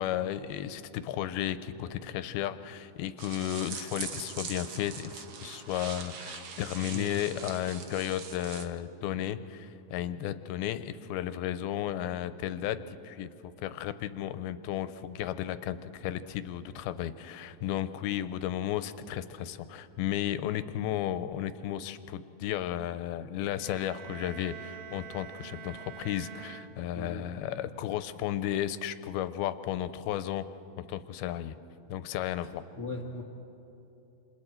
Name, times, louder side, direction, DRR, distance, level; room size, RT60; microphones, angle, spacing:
voice 1, 0.0-13.3 13.6-30.5 30.8-31.6 31.9-32.6, left 11 dB, 90° left, 12 dB, 2.6 m, -34 dB
sound 1, 3.2-8.7, right 6 dB, 65° right, 1.5 m, -42 dB
sound 2, 23.5-27.4, right 10 dB, 85° right, 1.7 m, -46 dB
voice 2, 26.9-27.3 32.7-33.2, left 2 dB, 65° left, 1 dB, 0.8 m, -38 dB
28.5 x 27.5 x 4.5 m, 2.9 s
omnidirectional pair, 4.3 m